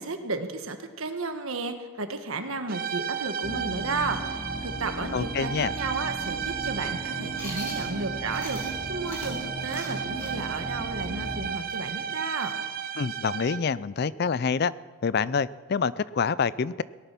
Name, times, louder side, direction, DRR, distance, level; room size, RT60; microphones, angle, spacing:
voice 1, 0.0-12.5, right 3 dB, 70° right, 7 dB, 1.4 m, -33 dB
sound 1, 2.7-13.8, right 8 dB, 40° right, 0.7 m, -34 dB
sound 2, 3.4-11.5, equal, 30° left, 1.3 m, -37 dB
voice 2, 5.1-5.7 13.0-14.7 15.0-16.8, left 5 dB, 45° left, 19 dB, 0.4 m, -26 dB
Chewing mastication, 7.3-8.8 9.1-12.7, equal, 10° left, 3.5 m, -42 dB
18.0 x 11.5 x 6.0 m, 1.5 s
head